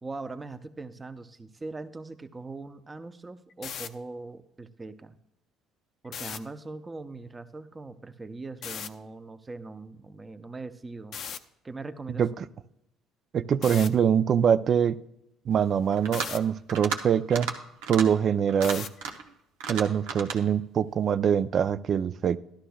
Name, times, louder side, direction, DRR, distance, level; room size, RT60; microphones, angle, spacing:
voice 1, 0.0-5.2 6.0-11.2 11.6-12.4, right 3 dB, 25° right, 10 dB, 0.7 m, -41 dB
sound 1, 3.5-3.9 6.1-6.4 8.6-8.9 11.1-11.4 13.6-13.9 16.1-16.4 18.6-19.0, left 8 dB, 60° left, 0.5 m, -37 dB
voice 2, 13.3-15.0 15.5-17.5 17.9-18.9 19.7-22.4, right 8 dB, 50° right, 16 dB, 0.4 m, -24 dB
sound 2, 15.9-16.4 16.7-17.0 17.3-17.6 17.8-18.1 18.5-19.3 19.6-20.4, right 6 dB, 85° right, 0.9 m, -33 dB
13.0 x 11.5 x 2.3 m, 0.82 s
supercardioid pair, 80°, 0 cm